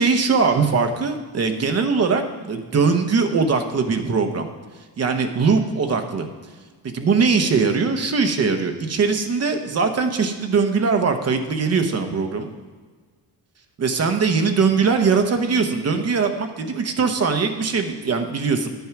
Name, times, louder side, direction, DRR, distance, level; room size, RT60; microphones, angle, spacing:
voice 1, 0.0-4.5 5.0-6.3 6.8-12.5 13.8-18.7, right 5 dB, 35° right, 6 dB, 0.9 m, -21 dB
9.3 x 9.2 x 5.8 m, 1.4 s
wide cardioid pair, 175°, 42 cm